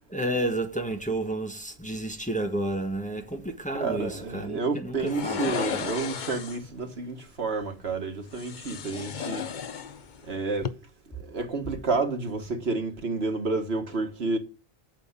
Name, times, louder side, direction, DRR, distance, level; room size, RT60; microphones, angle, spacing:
voice 1, 0.1-5.9, right 1 dB, 5° left, 1.4 m, -31 dB
voice 2, 3.7-9.5 10.3-10.8 11.2-14.4, right 3 dB, 80° right, 2.0 m, -30 dB
sound 1, 5.1-6.7 8.3-10.2 10.5-10.7, left 7 dB, 50° left, 0.8 m, -34 dB
8.9 x 7.0 x 8.2 m
omnidirectional pair, 1.1 m